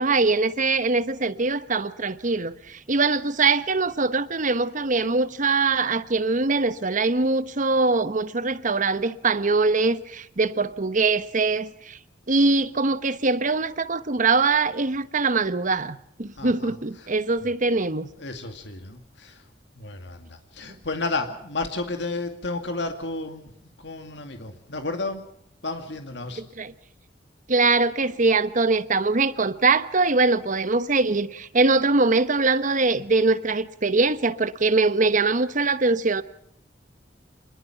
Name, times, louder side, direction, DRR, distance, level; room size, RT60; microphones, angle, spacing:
voice 1, 0.0-12.0 12.3-18.1 26.6-26.7 27.5-36.2, right 3 dB, 45° right, 1.1 m, -22 dB
voice 2, 16.4-17.1 17.4-17.5 18.2-19.5 19.8-25.3 25.6-26.4, left 3 dB, 70° left, 2.3 m, -32 dB
26.5 x 21.0 x 5.8 m
head